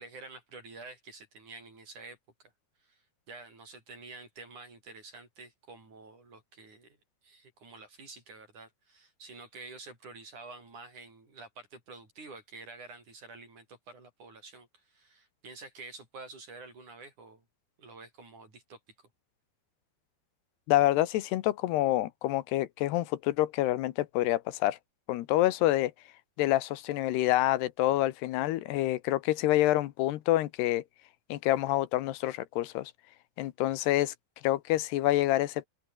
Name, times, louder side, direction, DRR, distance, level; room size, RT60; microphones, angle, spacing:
voice 1, 0.0-2.5 2.8-3.0 3.3-7.0 7.2-17.4 17.8-18.8, right 3 dB, 45° right, 9.1 m, -49 dB
voice 2, 20.7-24.8 25.1-25.9 26.4-30.8 31.3-32.9 33.4-34.1 34.4-35.7, left 15 dB, 85° left, 3.1 m, -27 dB
open air
omnidirectional pair, 4.7 m